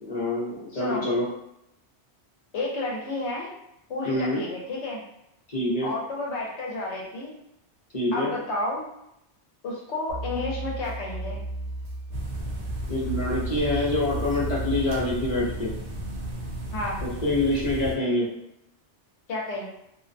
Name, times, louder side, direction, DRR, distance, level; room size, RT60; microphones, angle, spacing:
voice 1, 0.0-1.3 4.0-4.4 5.5-5.9 7.9-8.3 12.9-15.7 17.0-18.3, left 2 dB, 40° left, -7 dB, 0.8 m, -26 dB
voice 2, 0.7-1.0 2.5-3.5 3.9-5.0 5.8-7.3 8.1-8.9 9.6-11.4 16.7-17.0 19.3-19.7, left 2 dB, 75° left, -3 dB, 1.0 m, -31 dB
sound 1, 10.1-15.1, right 1 dB, 55° right, 0.4 m, -34 dB
sound 2, 12.1-18.0, right 1 dB, 75° right, 0.8 m, -34 dB
2.5 x 2.1 x 2.5 m, 0.79 s
omnidirectional pair, 1.2 m